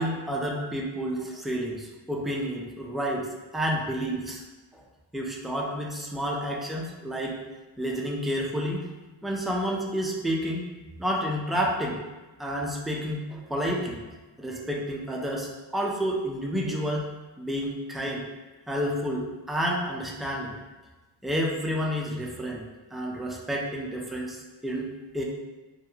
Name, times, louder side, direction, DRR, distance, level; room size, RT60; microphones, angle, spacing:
voice 1, 0.0-4.4 4.7-4.8 5.1-7.4 7.8-8.8 9.2-10.6 11.0-12.0 12.4-14.0 14.4-17.1 17.4-18.2 18.7-20.6 21.2-22.6 22.9-24.8 25.1-25.2, equal, ahead, -2 dB, 0.4 m, -30 dB
2.4 x 2.2 x 2.9 m, 1.2 s
supercardioid pair, 45°, 50 cm